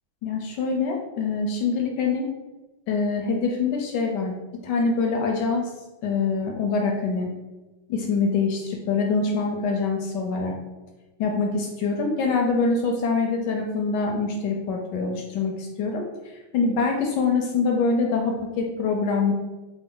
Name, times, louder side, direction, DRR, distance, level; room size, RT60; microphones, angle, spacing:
voice 1, 0.2-2.3 2.9-4.4 4.6-5.7 6.0-7.3 7.9-10.5 11.2-16.0 16.5-19.3, left 4 dB, 75° left, 1 dB, 1.0 m, -24 dB
4.9 x 2.0 x 3.7 m, 1.1 s
omnidirectional pair, 2.2 m